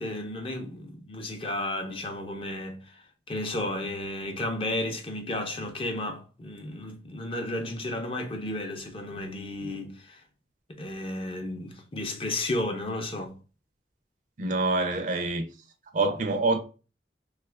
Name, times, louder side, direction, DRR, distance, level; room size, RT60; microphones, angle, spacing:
voice 1, 0.0-10.2 10.8-13.4, left 1 dB, 30° left, 0.5 m, -33 dB
voice 2, 14.4-15.5 15.9-16.6, right 3 dB, 45° right, 0.5 m, -26 dB
2.8 x 2.4 x 3.1 m
head